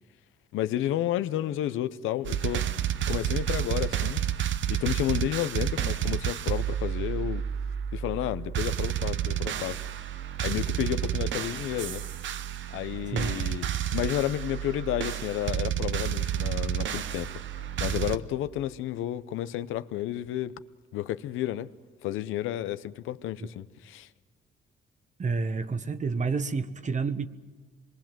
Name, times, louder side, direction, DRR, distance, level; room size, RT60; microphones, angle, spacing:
voice 1, 0.5-2.7 3.1-4.2 4.7-7.4 7.9-9.8 10.4-12.0 12.7-17.3 17.8-20.6 20.9-21.7 22.0-24.1, left 12 dB, 90° left, 0.8 m, -31 dB
sound 1, 2.2-18.2, right 10 dB, 70° right, 0.9 m, -30 dB
voice 2, 25.2-27.3, right 4 dB, 40° right, 1.2 m, -29 dB
25.0 x 22.0 x 7.5 m
cardioid pair, 90°, 20 cm